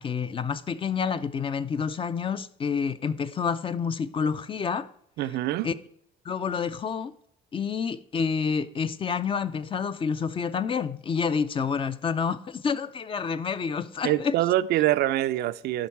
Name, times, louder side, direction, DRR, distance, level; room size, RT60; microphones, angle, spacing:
voice 1, 0.0-4.9 5.6-5.7 6.3-7.1 7.5-14.3, left 6 dB, 30° left, 0.5 m, -28 dB
voice 2, 5.2-5.7 14.0-15.9, right 14 dB, 75° right, 0.5 m, -25 dB
11.5 x 5.3 x 4.6 m
cardioid pair, 110°, 17 cm